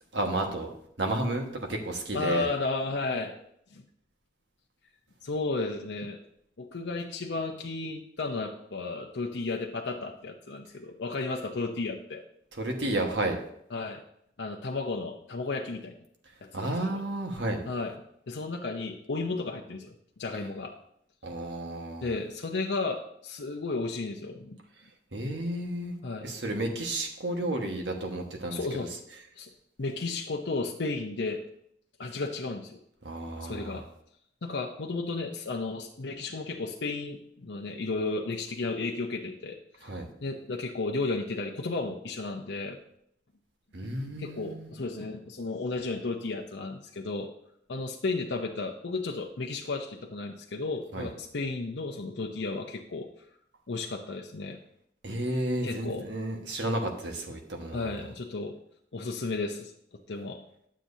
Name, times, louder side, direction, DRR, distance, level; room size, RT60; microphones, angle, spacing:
voice 1, 0.1-0.7 1.0-2.5 12.6-13.4 16.5-17.6 21.2-22.1 25.1-25.9 26.2-28.9 33.0-33.8 39.8-40.1 43.7-44.7 50.9-51.1 55.0-57.9, right 1 dB, 90° right, 2 dB, 1.5 m, -32 dB
voice 2, 2.1-3.4 3.7-3.8 5.2-6.2 6.6-12.2 13.7-14.0 14.4-16.0 16.4-17.0 17.7-17.9 18.3-20.7 22.0-24.6 26.0-26.3 28.5-28.9 29.4-29.5 29.8-31.4 32.0-32.8 33.4-33.8 34.4-42.8 44.2-47.3 47.7-53.1 53.7-54.6 55.6-56.1 57.7-58.6 58.9-59.7 60.1-60.4, left 3 dB, 85° left, 1 dB, 0.7 m, -33 dB
11.5 x 7.4 x 2.7 m, 0.70 s
head